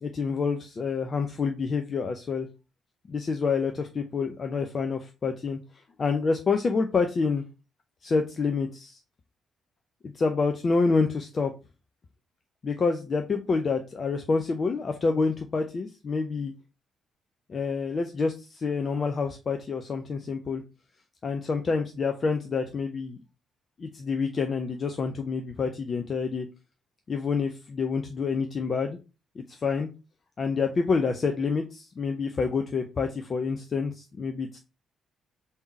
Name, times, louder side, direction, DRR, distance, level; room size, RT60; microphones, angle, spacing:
voice 1, 0.0-2.5 3.1-5.6 6.0-7.4 8.0-9.0 10.0-11.5 12.6-16.5 17.5-20.6 21.2-23.2 23.8-26.5 27.1-29.0 29.4-29.9 30.4-34.6, left 4 dB, 45° left, 4 dB, 0.5 m, -27 dB
3.5 x 2.8 x 4.6 m, 0.30 s
figure-of-eight pair, 40°, 0 cm